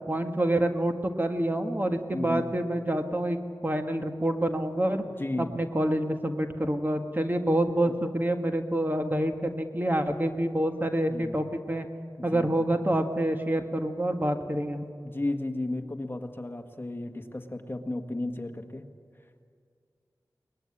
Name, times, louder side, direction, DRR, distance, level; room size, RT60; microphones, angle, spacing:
voice 1, 0.0-5.0 5.4-11.9 12.2-14.9, right 1 dB, 25° right, 5 dB, 1.6 m, -27 dB
voice 2, 2.1-2.5 5.2-5.5 7.8-7.9 11.1-11.4 12.2-12.6 15.0-18.9, left 2 dB, 30° left, 6 dB, 1.6 m, -34 dB
23.0 x 19.5 x 9.8 m, 2.2 s
wide cardioid pair, 60°, 8 cm